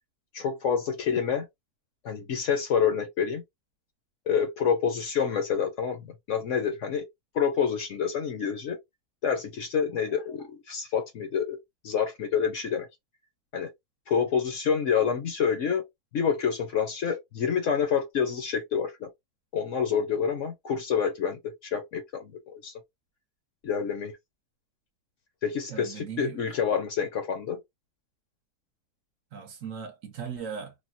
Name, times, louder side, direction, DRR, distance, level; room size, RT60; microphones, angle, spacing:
voice 1, 0.3-1.5 2.0-3.4 4.3-7.1 7.3-8.8 9.2-11.6 11.8-12.9 13.5-13.7 14.1-15.8 16.1-19.1 19.5-22.7 23.6-24.1 25.4-27.6, left 7 dB, 60° left, 0.9 m, -27 dB
voice 2, 25.7-26.4 29.3-30.7, right 7 dB, 60° right, 1.1 m, -38 dB
3.4 x 2.2 x 2.6 m
omnidirectional pair, 1.7 m